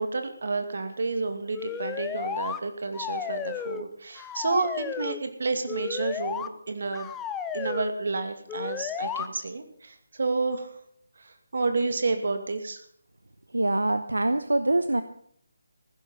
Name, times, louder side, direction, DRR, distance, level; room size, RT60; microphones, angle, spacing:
voice 1, 0.0-7.1 7.5-10.7 11.2-12.8, right 3 dB, 60° right, 7 dB, 2.5 m, -30 dB
sound 1, 1.5-2.6 2.9-3.9 4.2-5.2 5.7-6.5 6.9-7.9 8.5-9.3, left 8 dB, 10° left, 0.7 m, -33 dB
voice 2, 13.5-15.0, right 2 dB, 80° right, 11 dB, 0.9 m, -24 dB
15.5 x 11.5 x 5.7 m, 0.64 s
figure-of-eight pair, 155°, 0 cm